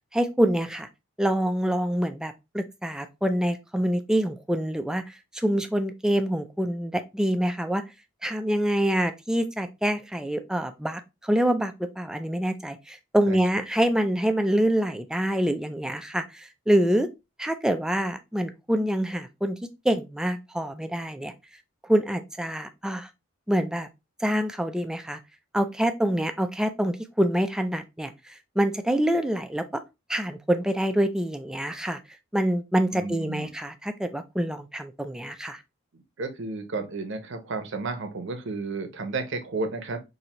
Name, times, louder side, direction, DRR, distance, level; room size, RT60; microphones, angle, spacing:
voice 1, 0.1-0.9 1.2-7.8 8.2-17.1 17.4-21.3 21.8-23.1 23.5-23.9 24.2-25.2 25.5-29.8 30.1-32.0 32.3-35.6, equal, 5° right, 0.4 m, -26 dB
voice 2, 32.9-33.5 36.2-40.0, right 3 dB, 65° right, 0.8 m, -32 dB
4.2 x 2.7 x 2.9 m
head